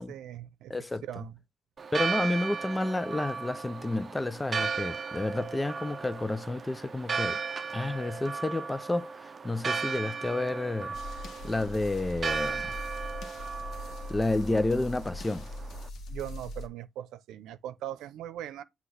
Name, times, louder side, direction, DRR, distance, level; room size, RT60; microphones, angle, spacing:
voice 1, 0.0-0.7 1.0-1.4 16.1-18.6, right 12 dB, 85° right, 0.7 m, -40 dB
voice 2, 0.7-1.0 1.9-7.4 7.7-11.0 11.4-12.7 14.1-15.4, left 2 dB, 15° left, 0.4 m, -30 dB
Church bell, 1.8-15.9, right 5 dB, 35° right, 0.7 m, -36 dB
sound 1, 10.9-16.7, left 1 dB, 65° left, 1.3 m, -41 dB
7.9 x 2.9 x 5.8 m
cardioid pair, 90°, 0 cm